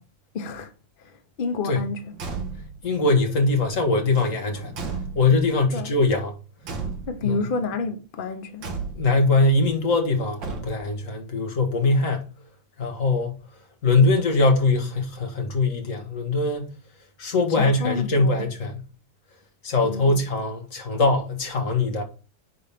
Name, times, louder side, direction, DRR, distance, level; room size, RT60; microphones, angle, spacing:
voice 1, 0.3-0.7 1.4-2.4 5.7-5.9 7.1-8.8 17.6-18.4 19.8-20.2, left 4 dB, 65° left, 0.5 m, -29 dB
Car / Truck / Slam, 2.1-2.9 4.1-5.6 6.6-7.4 8.6-9.3 10.4-11.1, right 4 dB, 70° right, 2.1 m, -34 dB
voice 2, 2.8-4.8 5.2-6.4 7.2-7.5 8.9-12.3 12.8-13.4 13.8-16.7 17.2-18.9 19.6-22.0, left 3 dB, 45° left, 1.7 m, -22 dB
9.9 x 3.8 x 3.5 m
omnidirectional pair, 2.1 m